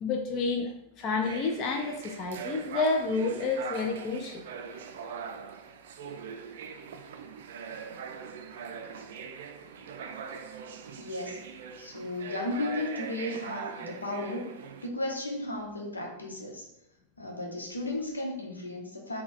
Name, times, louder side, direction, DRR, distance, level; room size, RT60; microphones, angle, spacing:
voice 1, 0.0-4.4, left 3 dB, 35° left, 3 dB, 0.4 m, -30 dB
sound 1, 1.2-14.9, right 6 dB, 55° right, 0.4 m, -41 dB
voice 2, 11.0-11.4 11.8-14.5 14.8-16.7 17.2-19.2, left 1 dB, 80° left, 0 dB, 0.8 m, -34 dB
4.2 x 2.2 x 3.7 m, 0.85 s
figure-of-eight pair, 90°, 0 cm